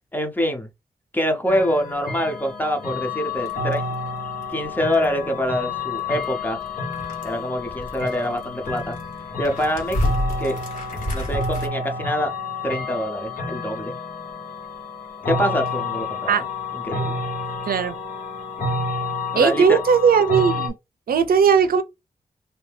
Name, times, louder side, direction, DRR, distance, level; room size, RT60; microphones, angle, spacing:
voice 1, 0.1-0.7 1.1-3.8 4.5-6.6 7.2-9.0 9.4-10.1 10.4-10.6 11.1-12.3 12.6-14.0 15.3-17.2 19.3-19.8, equal, 10° left, 0.7 m, -25 dB
sound 1, 1.5-20.7, left 3 dB, 70° left, 1.2 m, -30 dB
sound 2, 3.4-11.7, left 1 dB, 55° left, 1.6 m, -32 dB
voice 2, 19.4-20.7 21.1-21.8, right 6 dB, 85° right, 0.5 m, -17 dB
2.7 x 2.6 x 3.3 m
wide cardioid pair, 135°, 15 cm